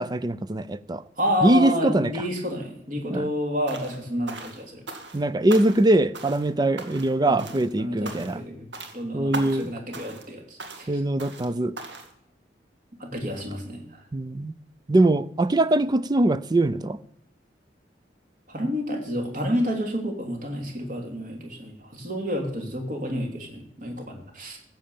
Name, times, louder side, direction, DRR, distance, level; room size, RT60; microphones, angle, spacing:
voice 1, 0.0-1.0 1.4-2.1 3.1-3.3 5.1-8.4 9.1-9.7 10.9-11.8 14.1-14.5 14.9-17.0, right 1 dB, 25° right, 0.4 m, -22 dB
voice 2, 1.2-4.8 7.2-7.4 7.8-8.7 8.9-10.9 13.0-14.0 18.5-24.6, equal, 50° right, 3.0 m, -30 dB
sound 1, 3.7-4.0 4.3-5.2 5.5-5.9 6.1-6.5 6.8-7.1 7.4-7.7 8.0-8.4 8.7-9.0 9.3-9.7 9.9-10.3 10.6-10.9 11.2-11.5 11.8-12.1, right 2 dB, 80° right, 2.0 m, -38 dB
15.5 x 7.5 x 7.1 m
head